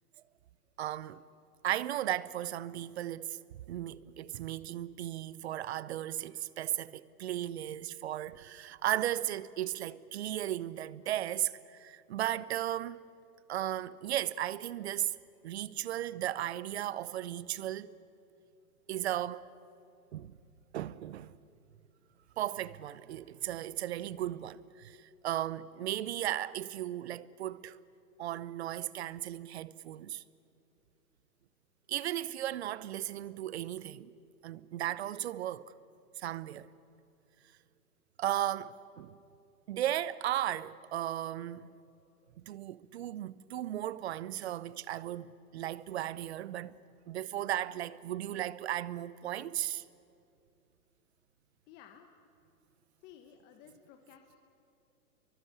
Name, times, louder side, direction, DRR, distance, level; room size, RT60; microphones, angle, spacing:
voice 1, 0.8-1.2 1.6-3.4 3.7-13.0 13.5-15.2 15.4-18.0 18.9-19.4 20.1-20.3 20.7-21.3 22.4-27.8 28.2-30.2 31.9-34.1 34.4-35.6 36.2-36.7 38.2-39.2 39.7-41.7 42.4-46.8 47.1-49.8, right 12 dB, 45° right, 0.9 m, -36 dB
voice 2, 51.7-52.1 53.0-54.4, left 9 dB, 20° left, 1.3 m, -55 dB
29.0 x 23.5 x 8.4 m
hypercardioid pair, 140°, 46 cm